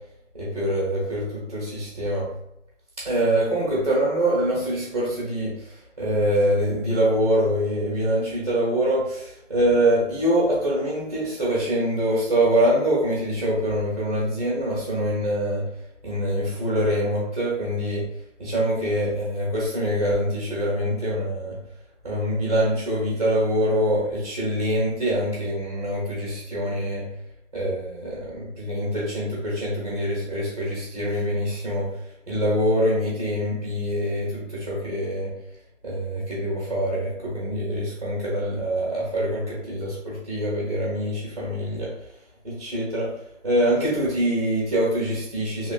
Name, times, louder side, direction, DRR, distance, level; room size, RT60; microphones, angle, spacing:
voice 1, 0.3-2.3 3.0-15.7 16.0-18.0 18.4-21.6 22.0-27.1 27.5-31.9 32.3-35.3 35.8-41.9 42.4-43.1 43.4-45.7, equal, 30° right, -8 dB, 0.9 m, -24 dB
2.9 x 2.4 x 2.5 m, 0.79 s
hypercardioid pair, 180°, 37 cm